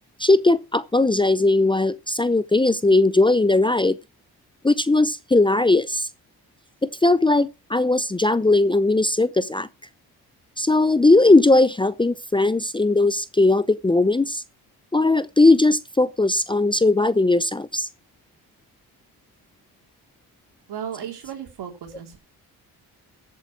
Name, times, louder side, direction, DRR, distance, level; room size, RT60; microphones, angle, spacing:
voice 1, 0.2-4.0 4.6-6.1 6.8-9.7 10.6-14.4 14.9-17.9, left 2 dB, 15° left, 0.6 m, -19 dB
voice 2, 20.7-22.2, right 9 dB, 75° right, 4.0 m, -35 dB
14.0 x 8.5 x 4.6 m
cardioid pair, 90°, 39 cm